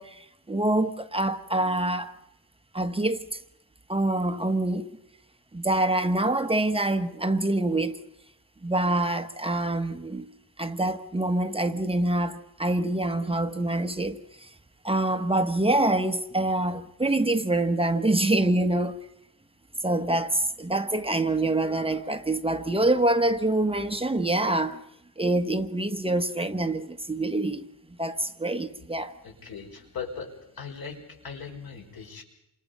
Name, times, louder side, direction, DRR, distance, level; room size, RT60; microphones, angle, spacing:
voice 1, 0.0-2.1 2.7-3.2 3.9-4.9 5.5-8.0 8.6-10.3 10.6-14.5 14.8-19.0 19.8-24.8 25.2-27.6 28.0-29.1, right 2 dB, 15° right, 1.1 m, -25 dB
voice 2, 29.2-32.2, left 5 dB, 85° left, 5.6 m, -39 dB
29.0 x 26.0 x 5.4 m
wide cardioid pair, 155°, 36 cm